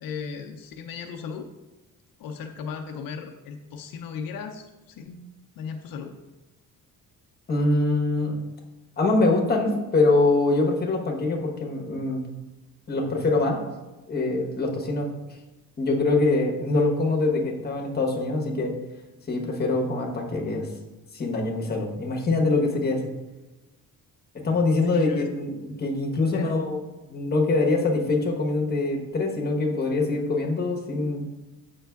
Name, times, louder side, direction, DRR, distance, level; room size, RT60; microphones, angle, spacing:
voice 1, 0.0-1.5 2.2-6.1 24.8-25.3 26.3-26.5, left 5 dB, 80° left, 5 dB, 0.6 m, -36 dB
voice 2, 7.5-8.3 9.0-12.2 12.9-13.6 14.1-15.1 15.8-18.7 19.3-20.7 21.1-23.0 24.4-31.2, left 2 dB, 30° left, 0 dB, 1.0 m, -24 dB
8.1 x 5.4 x 2.3 m, 1.1 s
cardioid pair, 140°, 34 cm